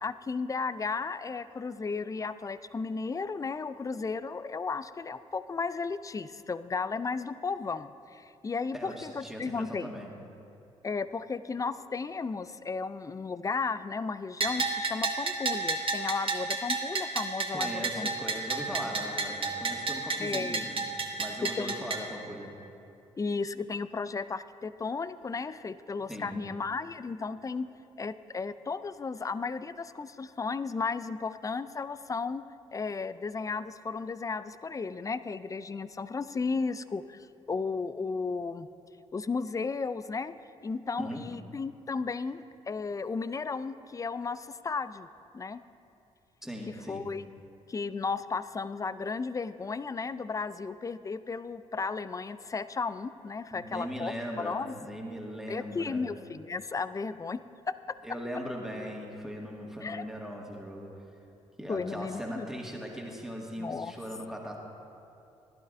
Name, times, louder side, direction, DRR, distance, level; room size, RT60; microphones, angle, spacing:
voice 1, 0.0-9.9 10.8-18.1 20.2-20.6 21.6-21.9 23.2-27.7 28.0-32.4 32.7-38.7 39.1-40.4 40.6-45.1 45.3-45.6 46.7-47.2 47.7-54.8 55.5-57.4 57.7-57.8 59.8-60.0 61.7-62.5 63.6-63.9, left 4 dB, 20° left, 15 dB, 0.4 m, -34 dB
voice 2, 8.7-10.1 17.5-22.6 26.1-26.4 41.0-41.4 46.4-47.1 53.5-56.1 58.0-61.0 61.6-64.6, equal, 5° right, -1 dB, 2.0 m, -39 dB
Bell, 14.4-22.0, right 3 dB, 40° right, 1.2 m, -31 dB
15.0 x 11.5 x 2.6 m, 2.7 s
hypercardioid pair, 45°, 15 cm